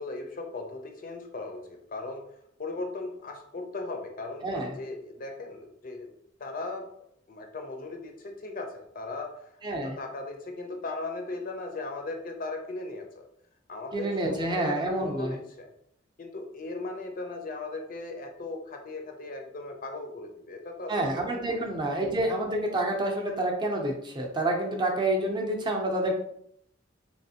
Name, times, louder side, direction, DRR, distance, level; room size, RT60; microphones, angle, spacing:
voice 1, 0.0-2.3 2.6-6.1 6.4-13.3 13.7-15.7 16.2-21.6, left 2 dB, 45° left, 4 dB, 0.5 m, -38 dB
voice 2, 4.4-4.7 9.6-10.0 13.9-15.3 20.9-26.2, right 1 dB, 25° right, 0 dB, 0.5 m, -28 dB
3.3 x 3.1 x 2.8 m, 0.71 s
head